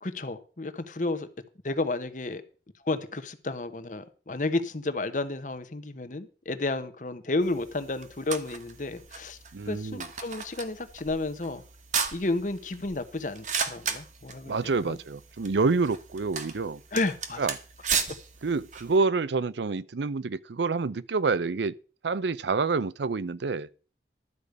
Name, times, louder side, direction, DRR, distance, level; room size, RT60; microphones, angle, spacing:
voice 1, 0.0-1.3 1.6-2.4 2.8-9.4 9.7-11.6 12.1-14.6 14.8-15.0 16.9-17.4, left 2 dB, 45° left, 1.0 m, -31 dB
sound 1, 7.4-19.0, right 6 dB, 45° right, 1.2 m, -36 dB
voice 2, 9.5-10.1 14.5-16.8 17.4-17.5 18.4-21.7 22.0-23.7, right 4 dB, 80° right, 0.5 m, -27 dB
12.0 x 5.0 x 8.0 m
head